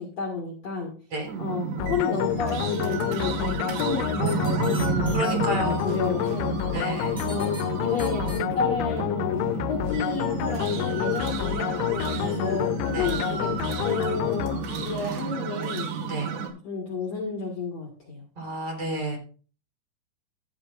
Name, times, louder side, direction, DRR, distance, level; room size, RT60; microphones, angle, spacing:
voice 1, 0.0-0.9 1.4-6.6 7.2-13.5 13.8-14.5 14.8-15.9 16.6-18.3, left 4 dB, 55° left, 0 dB, 2.1 m, -31 dB
sound 1, 1.3-16.5, right 6 dB, 80° right, 4.1 m, -31 dB
sound 2, 1.8-15.1, left 14 dB, 85° left, 2.9 m, -29 dB
sound 3, 4.3-5.3 7.2-7.6 8.0-8.4, left 1 dB, ahead, 4.2 m, -41 dB
voice 2, 5.1-6.0 6.7-7.2 12.9-13.1 16.1-16.3 18.4-19.2, right 1 dB, 35° right, 1 dB, 4.4 m, -30 dB
14.0 x 11.5 x 2.5 m, 0.39 s
omnidirectional pair, 5.4 m